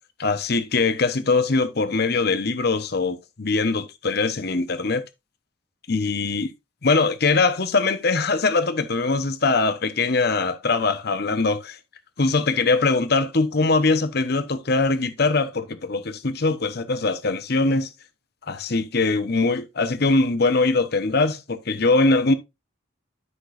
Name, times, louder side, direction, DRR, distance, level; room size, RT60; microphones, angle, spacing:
voice 1, 0.2-5.0 5.9-6.5 6.8-11.8 12.2-17.9 18.5-22.3, left 3 dB, 55° left, 0.9 m, -22 dB
11.0 x 6.0 x 2.5 m
head